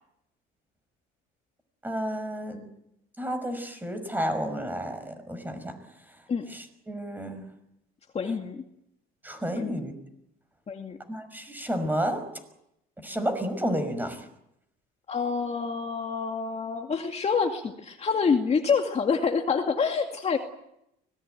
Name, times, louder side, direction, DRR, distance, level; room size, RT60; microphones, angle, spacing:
voice 1, 1.8-2.7 3.2-5.8 6.5-7.4 9.2-9.9 11.1-12.2 13.0-14.3, equal, 10° right, 9 dB, 5.8 m, -31 dB
voice 2, 8.1-8.6 9.5-9.7 10.7-11.0 15.1-20.4, left 5 dB, 30° left, 3 dB, 2.3 m, -27 dB
24.5 x 20.0 x 9.2 m, 0.82 s
cardioid pair, 115°, 21 cm